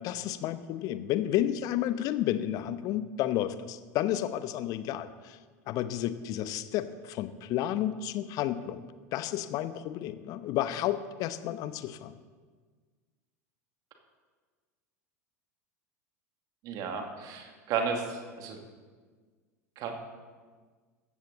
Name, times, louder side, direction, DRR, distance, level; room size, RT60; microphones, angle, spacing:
voice 1, 0.0-5.4 5.7-8.8 9.1-12.1, left 12 dB, 45° left, 12 dB, 0.9 m, -31 dB
voice 2, 16.6-18.6 19.8-19.9, right 5 dB, 45° right, 3 dB, 2.5 m, -33 dB
16.0 x 14.0 x 4.1 m, 1.5 s
figure-of-eight pair, 80°, 9 cm